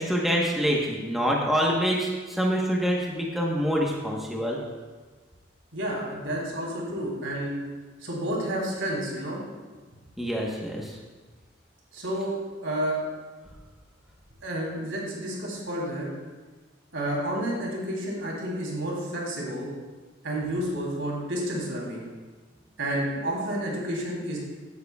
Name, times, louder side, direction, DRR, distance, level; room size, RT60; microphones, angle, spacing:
voice 1, 0.0-4.6 10.2-10.9, equal, ahead, -3 dB, 1.1 m, -26 dB
voice 2, 5.7-7.5 8.0-9.4 11.9-12.4 12.6-13.0 14.4-16.1 16.9-19.7 20.2-22.0 22.8-24.4, right 1 dB, 85° right, -3 dB, 3.2 m, -30 dB
16.0 x 9.5 x 2.3 m, 1.3 s
head